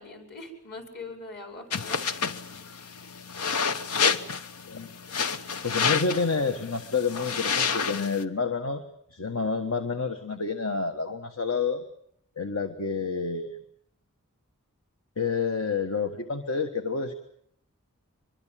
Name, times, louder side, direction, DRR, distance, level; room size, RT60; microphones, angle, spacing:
voice 1, 0.0-2.3, left 2 dB, 50° left, 4 dB, 5.2 m, -42 dB
sound 1, 1.7-8.2, left 6 dB, 85° left, 1.2 m, -29 dB
voice 2, 5.6-8.8 9.1-11.8 12.4-13.6 15.2-17.1, left 4 dB, 65° left, 7 dB, 1.5 m, -29 dB
24.5 x 23.0 x 7.6 m, 0.68 s
head